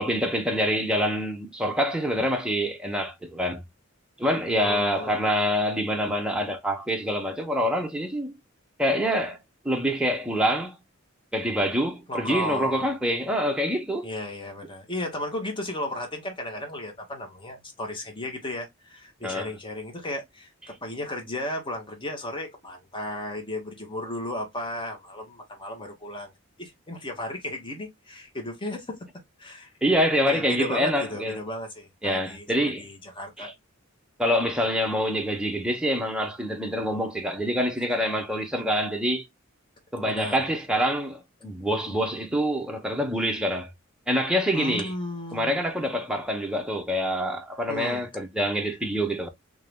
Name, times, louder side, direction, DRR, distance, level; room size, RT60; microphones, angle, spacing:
voice 1, 0.0-3.6 4.2-8.4 8.8-9.4 9.6-10.8 11.3-14.1 19.2-19.5 29.8-31.4 32.0-32.9 33.4-33.5 34.2-39.3 39.9-43.7 44.1-44.9 45.3-49.3, equal, 5° right, 0.7 m, -26 dB
voice 2, 4.6-5.3 12.1-12.9 14.0-20.5 20.8-26.3 26.6-29.0 29.4-29.7 30.3-33.5 40.1-40.4 44.5-45.6 47.7-48.1, left 1 dB, 25° left, 1.1 m, -34 dB
3.6 x 2.7 x 3.3 m
head